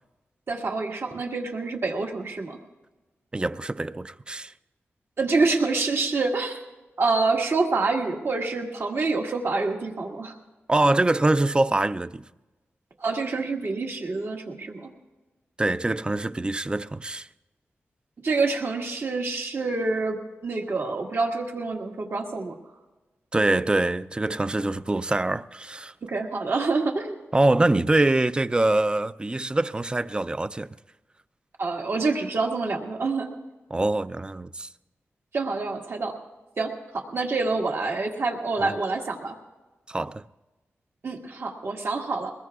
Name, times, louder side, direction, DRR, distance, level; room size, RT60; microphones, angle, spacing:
voice 1, 0.5-2.6 5.2-6.6 7.0-10.4 13.0-14.9 18.2-22.6 26.0-27.2 31.6-33.3 35.3-36.1 36.6-39.3 41.0-42.3, right 3 dB, 60° right, 1.8 m, -27 dB
voice 2, 3.3-4.5 10.7-12.2 15.6-17.3 23.3-25.9 27.3-30.7 33.7-34.7 38.6-38.8 39.9-40.2, right 2 dB, 20° right, 0.4 m, -24 dB
22.5 x 20.0 x 2.4 m
wide cardioid pair, 95°, 5 cm